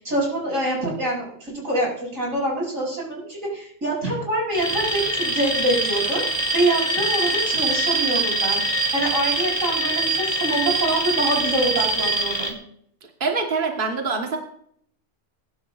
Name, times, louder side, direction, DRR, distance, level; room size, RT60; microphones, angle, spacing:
voice 1, 0.0-12.6, right 1 dB, 85° right, -3 dB, 7.2 m, -25 dB
Alarm, 4.5-12.5, right 2 dB, 15° right, 2.7 m, -24 dB
voice 2, 13.2-14.4, right 4 dB, 40° right, 2 dB, 1.6 m, -24 dB
21.0 x 11.5 x 2.5 m, 0.66 s
omnidirectional pair, 1.3 m